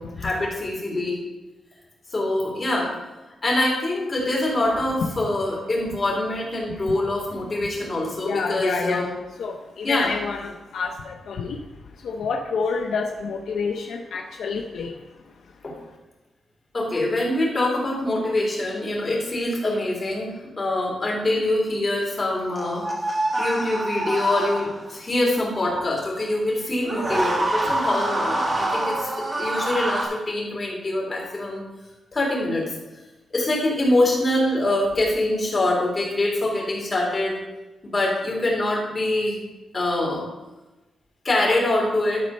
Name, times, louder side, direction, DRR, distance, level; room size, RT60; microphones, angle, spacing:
voice 1, 0.2-1.2 2.1-2.9 3.4-9.1 9.8-10.1 15.6-15.7 16.7-20.3 20.6-22.9 23.4-29.1 29.4-31.6 32.1-32.6 33.3-37.4 37.8-39.4 39.7-40.2 41.2-42.2, left 1 dB, 30° left, -3 dB, 3.2 m, -24 dB
voice 2, 8.2-9.1 9.4-11.6 12.0-14.9, left 5 dB, 80° left, 3 dB, 0.7 m, -28 dB
sound 1, 22.6-25.0 26.8-30.0, right 1 dB, 25° right, 1.5 m, -26 dB
11.5 x 4.3 x 5.4 m, 1.1 s
wide cardioid pair, 120°, 0 cm